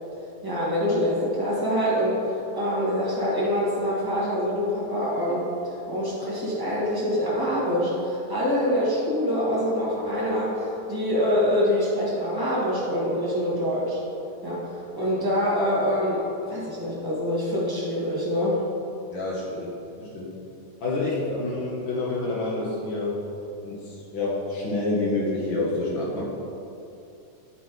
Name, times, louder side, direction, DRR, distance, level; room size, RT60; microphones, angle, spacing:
voice 1, 0.4-14.0 14.4-18.6, equal, 30° right, -8 dB, 0.4 m, -25 dB
voice 2, 19.1-19.7 20.0-20.4 20.8-23.2 23.6-26.2, left 2 dB, 65° left, -5 dB, 1.2 m, -28 dB
12.0 x 4.2 x 4.6 m, 2.8 s
omnidirectional pair, 3.6 m